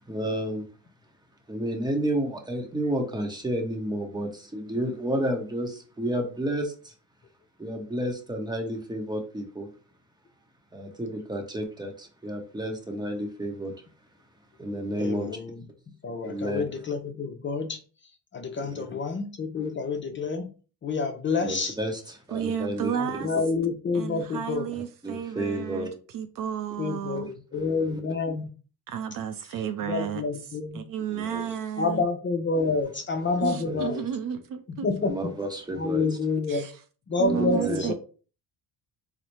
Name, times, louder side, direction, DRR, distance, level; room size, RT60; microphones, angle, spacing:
voice 1, 0.1-0.7 1.5-6.9 7.6-9.7 10.7-13.9 14.6-15.4 16.2-16.6 18.5-18.9 19.6-19.7 21.4-22.9 24.7-25.9 27.5-28.0 31.1-31.4 32.5-32.7 33.6-33.9 35.0-36.2 37.2-37.9, right 1 dB, 10° right, 0.8 m, -31 dB
voice 2, 15.0-15.5 16.0-17.8 18.3-20.5 20.8-21.7 23.0-24.7 26.8-28.5 29.9-30.8 31.8-34.0 34.8-35.2 35.8-36.7 37.1-37.9, left 4 dB, 30° left, 0.5 m, -28 dB
voice 3, 22.3-23.3 23.9-25.9 26.1-27.3 28.9-30.2 30.7-32.1 33.4-34.9 36.5-36.7 37.2-37.9, right 8 dB, 55° right, 0.5 m, -32 dB
4.0 x 2.0 x 3.0 m
cardioid pair, 100°, 41 cm